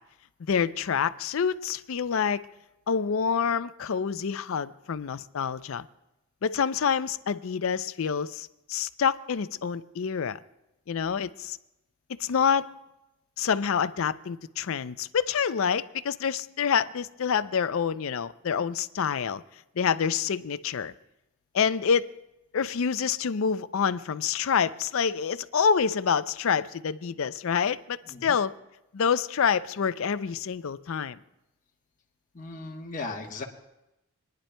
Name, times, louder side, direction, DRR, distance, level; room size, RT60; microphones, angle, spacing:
voice 1, 0.4-2.4 2.9-5.8 6.4-10.4 10.9-11.6 12.2-12.7 13.4-19.4 19.8-20.9 21.5-22.1 22.5-28.5 28.9-31.2, left 6 dB, 65° left, 14 dB, 0.4 m, -27 dB
voice 2, 28.1-28.4 32.3-33.4, left 3 dB, 35° left, 0 dB, 1.1 m, -37 dB
28.5 x 10.5 x 2.2 m, 0.93 s
head